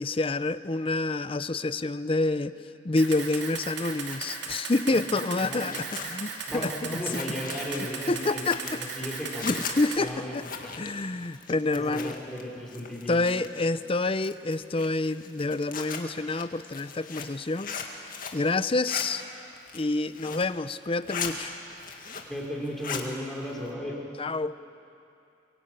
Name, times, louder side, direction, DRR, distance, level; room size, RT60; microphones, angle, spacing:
voice 1, 0.0-2.5 2.8-7.2 8.1-8.8 9.4-10.4 10.8-12.1 13.1-17.8 18.3-19.2 19.7-21.5 24.2-24.5, left 2 dB, 30° left, 13 dB, 0.6 m, -28 dB
Camera, 3.0-10.0, right 5 dB, 65° right, 2.7 m, -37 dB
Zipper (clothing), 3.8-12.4 12.7-13.7 14.1-18.4 18.7-19.1 19.5-20.5 20.9-21.3 21.7-22.4 22.7-23.1, left 6 dB, 50° left, 2.1 m, -38 dB
voice 2, 5.4-5.8 6.5-9.6 10.0-10.5 11.7-13.4 22.3-24.0, equal, ahead, -3 dB, 4.5 m, -35 dB
23.5 x 22.5 x 9.0 m, 2.6 s
head